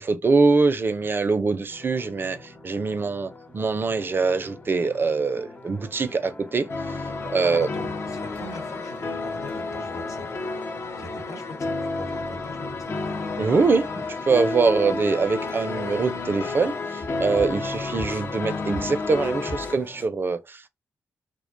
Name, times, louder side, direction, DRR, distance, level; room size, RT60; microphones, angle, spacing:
voice 1, 0.0-6.7 7.3-7.7 13.4-13.9 14.2-20.7, right 4 dB, 40° right, 0.4 m, -23 dB
sound 1, 1.7-20.1, left 2 dB, 30° left, 1.0 m, -43 dB
sound 2, 6.7-19.8, left 3 dB, 50° left, 0.5 m, -31 dB
voice 2, 7.4-10.3 11.0-13.0, left 2 dB, 70° left, 1.1 m, -41 dB
2.4 x 2.2 x 2.4 m
supercardioid pair, 50°, 6 cm